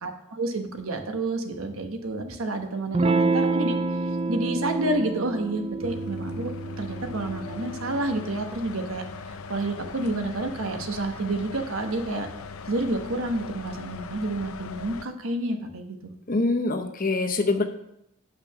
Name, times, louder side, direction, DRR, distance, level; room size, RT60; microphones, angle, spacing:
voice 1, 0.0-6.5 6.8-12.3 12.7-16.1, right 2 dB, 75° right, 5 dB, 1.2 m, -29 dB
Electric guitar / Strum, 2.9-8.1, right 3 dB, 25° right, 0.4 m, -28 dB
sound 1, 5.8-15.1, left 4 dB, 85° left, 0.5 m, -39 dB
voice 2, 16.3-17.6, left 3 dB, 40° left, 7 dB, 0.8 m, -24 dB
8.7 x 5.8 x 5.7 m, 0.79 s
head